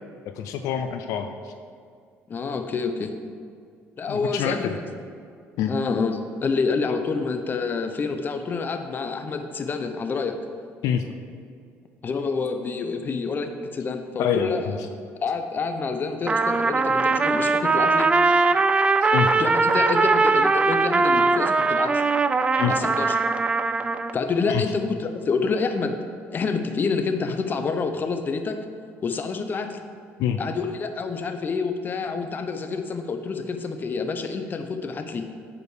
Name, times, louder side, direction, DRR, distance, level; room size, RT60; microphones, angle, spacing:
voice 1, 0.3-1.5 4.1-4.8 5.6-5.7 10.8-11.0 14.2-14.8 19.0-19.3 22.6-22.7 24.5-24.6 30.2-30.4, left 8 dB, 80° left, 7 dB, 0.5 m, -26 dB
voice 2, 2.3-3.1 4.0-4.8 5.7-10.4 12.0-14.8 15.2-18.1 19.4-22.0 22.7-23.1 24.1-26.0 26.3-28.6 29.0-29.8 30.4-35.3, left 4 dB, 35° left, 7 dB, 0.8 m, -27 dB
Trumpet, 16.3-24.1, right 3 dB, 20° right, 0.3 m, -21 dB
9.4 x 5.0 x 5.0 m, 2.2 s
cardioid pair, 100°, 5 cm